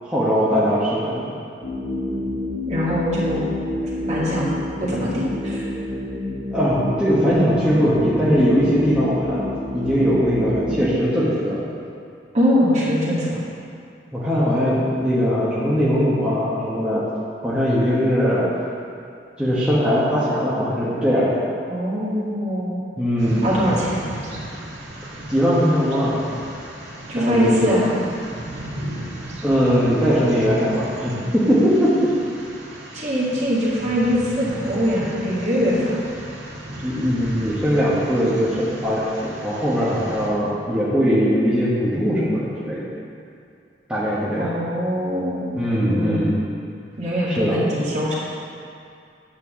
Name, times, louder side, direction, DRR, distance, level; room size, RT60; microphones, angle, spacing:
voice 1, 0.0-1.3 6.5-11.7 14.1-17.1 17.4-18.5 19.4-21.4 23.0-23.5 25.0-26.2 27.2-27.7 29.4-32.0 36.8-42.9 43.9-44.5 45.5-46.4 47.3-47.6, equal, 5° right, -10 dB, 1.2 m, -20 dB
sound 1, 1.6-10.8, left 1 dB, 50° left, 1.9 m, -29 dB
voice 2, 2.7-3.5 4.1-4.5 4.8-5.7 12.3-13.4 21.7-22.8 23.4-23.9 27.1-28.0 32.9-36.0 44.4-45.5 45.8-46.4 47.0-48.1, equal, 40° right, -7 dB, 1.9 m, -22 dB
sound 2, 23.2-40.3, right 1 dB, 80° right, 1.6 m, -35 dB
8.6 x 4.5 x 6.9 m, 2.4 s
head